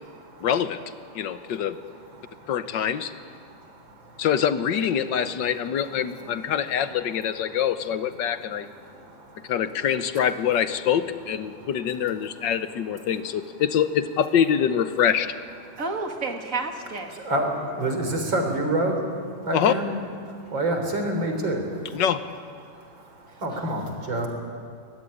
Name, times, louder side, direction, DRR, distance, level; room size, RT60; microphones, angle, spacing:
voice 1, 0.4-0.8 1.1-1.8 2.5-3.1 4.2-8.7 9.5-15.3 19.5-19.7 21.9-22.2, left 8 dB, 75° left, 11 dB, 1.6 m, -24 dB
voice 2, 1.1-1.6 2.1-2.5 3.4-4.3 8.4-8.5 8.7-9.5 11.5-11.7 17.1-19.9 20.2-22.0 22.6-24.3, right 1 dB, 85° right, 4 dB, 4.4 m, -29 dB
voice 3, 15.8-17.1, right 3 dB, 45° right, 3 dB, 2.5 m, -30 dB
22.0 x 21.0 x 9.8 m, 2.3 s
omnidirectional pair, 2.0 m